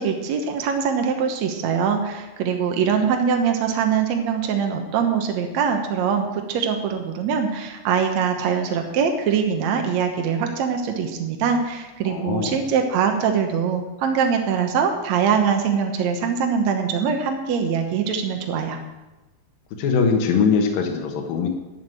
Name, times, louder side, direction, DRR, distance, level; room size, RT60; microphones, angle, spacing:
voice 1, 0.0-18.8, right 6 dB, 75° right, 4 dB, 1.6 m, -23 dB
voice 2, 12.1-12.6 19.8-21.5, left 5 dB, 65° left, 2 dB, 2.7 m, -21 dB
13.0 x 6.3 x 9.0 m, 1.1 s
omnidirectional pair, 4.8 m